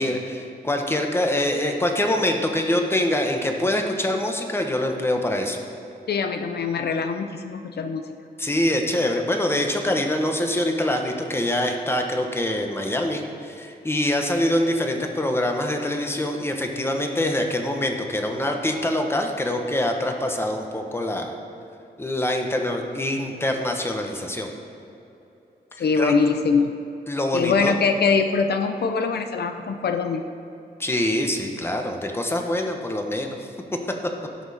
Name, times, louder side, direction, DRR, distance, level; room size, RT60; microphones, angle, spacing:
voice 1, 0.0-5.6 8.4-21.3 22.0-24.5 25.8-26.1 27.1-27.7 30.8-33.5, left 1 dB, 15° left, 3 dB, 1.0 m, -24 dB
voice 2, 6.1-8.0 25.8-26.7 27.3-30.2, left 5 dB, 80° left, 7 dB, 0.6 m, -23 dB
16.5 x 6.3 x 4.2 m, 2.9 s
wide cardioid pair, 120°, 17 cm